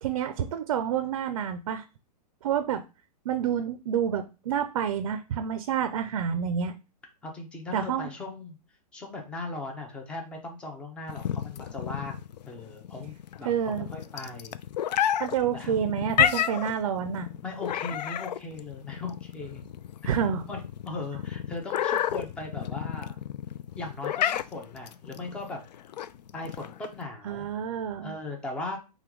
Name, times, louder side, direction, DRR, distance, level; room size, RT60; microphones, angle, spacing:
voice 1, 0.0-1.8 2.4-2.8 3.3-6.7 7.7-8.1 13.5-13.9 15.2-17.3 20.0-20.5 27.2-28.2, right 8 dB, 50° right, 9 dB, 0.4 m, -28 dB
voice 2, 7.2-8.6 8.9-12.2 12.5-14.6 15.5-15.8 17.4-19.6 20.0-20.1 20.5-23.2 23.8-25.6 26.3-27.5 28.0-28.8, left 2 dB, 5° left, 2 dB, 0.4 m, -38 dB
sound 1, 11.1-27.0, left 10 dB, 80° left, 0.4 m, -31 dB
5.7 x 2.2 x 3.7 m, 0.30 s
hypercardioid pair, 165°, 21 cm